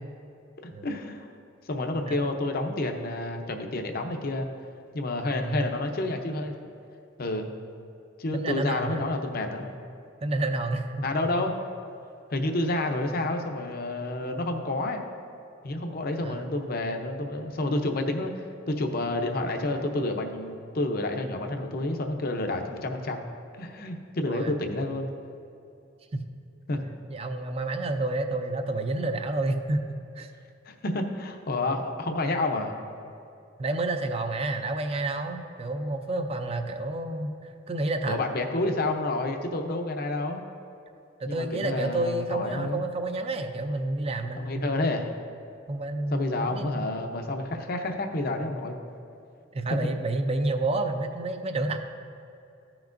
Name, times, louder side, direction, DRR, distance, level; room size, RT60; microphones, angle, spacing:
voice 1, 0.6-1.3 1.7-4.5 4.9-6.5 7.2-7.5 8.2-9.7 11.0-11.5 12.3-15.0 15.6-18.3 18.7-23.2 23.6-25.1 26.7-26.8 30.7-32.7 38.0-40.4 41.2-42.8 44.3-45.1 46.1-48.8, left 2 dB, 50° left, 4 dB, 0.7 m, -29 dB
voice 2, 8.3-9.0 10.2-11.0 16.2-16.4 24.3-24.5 26.1-26.2 27.1-30.3 33.6-38.2 41.2-44.7 45.7-46.8 49.5-51.8, right 2 dB, 30° right, 7 dB, 0.5 m, -29 dB
14.0 x 5.9 x 2.6 m, 2.7 s
head